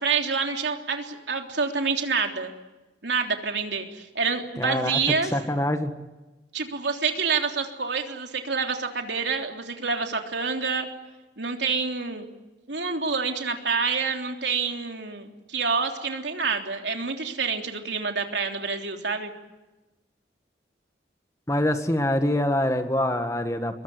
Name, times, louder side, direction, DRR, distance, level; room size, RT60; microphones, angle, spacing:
voice 1, 0.0-2.5 3.0-5.3 6.5-10.9 11.4-12.3 12.7-19.3, right 5 dB, 80° right, 3 dB, 3.3 m, -27 dB
voice 2, 4.6-5.9 21.5-23.8, left 1 dB, 20° left, 7 dB, 1.6 m, -25 dB
22.5 x 22.0 x 9.7 m, 1.1 s
head